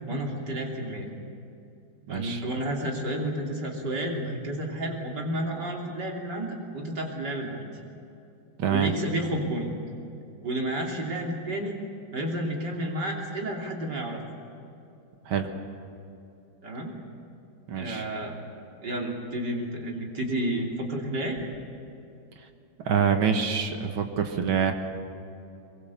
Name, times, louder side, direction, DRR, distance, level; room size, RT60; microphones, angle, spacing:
voice 1, 0.1-1.1 2.1-7.7 8.7-9.8 10.4-11.8 12.1-14.2 16.6-16.9 17.8-18.4 18.8-21.4, right 1 dB, 55° right, 0 dB, 3.7 m, -31 dB
voice 2, 2.1-2.4 8.6-8.9 15.3-15.5 17.7-18.0 22.9-24.7, right 7 dB, 85° right, 6 dB, 2.3 m, -25 dB
23.0 x 22.0 x 7.2 m, 2.7 s
omnidirectional pair, 2.2 m